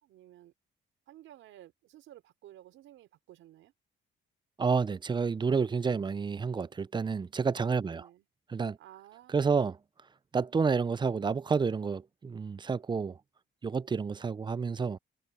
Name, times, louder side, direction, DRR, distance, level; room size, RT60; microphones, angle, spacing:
voice 1, 0.0-0.5 1.1-3.7 7.8-8.3 8.8-9.7, right 13 dB, 85° right, 5.4 m, -54 dB
voice 2, 4.6-8.0 8.5-8.8 9.3-9.8 10.3-13.2 13.6-15.0, right 5 dB, 25° right, 0.5 m, -29 dB
cardioid pair, 90°, 20 cm